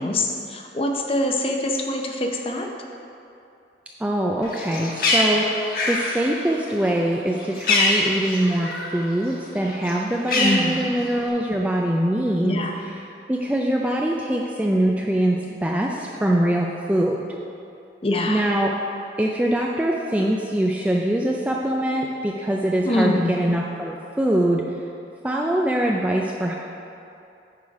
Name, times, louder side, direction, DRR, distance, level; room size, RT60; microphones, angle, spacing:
voice 1, 0.0-2.7 10.3-10.8 12.4-12.7 18.0-18.4 22.8-23.4, left 1 dB, 30° left, 2 dB, 0.7 m, -24 dB
voice 2, 4.0-12.6 13.3-17.2 18.3-18.7 19.2-24.6 25.2-26.6, right 1 dB, 10° right, -1 dB, 0.3 m, -23 dB
Bird, 4.4-9.0 9.3-11.3, left 2 dB, 55° left, 1.2 m, -24 dB
9.3 x 5.0 x 4.8 m, 2.6 s
head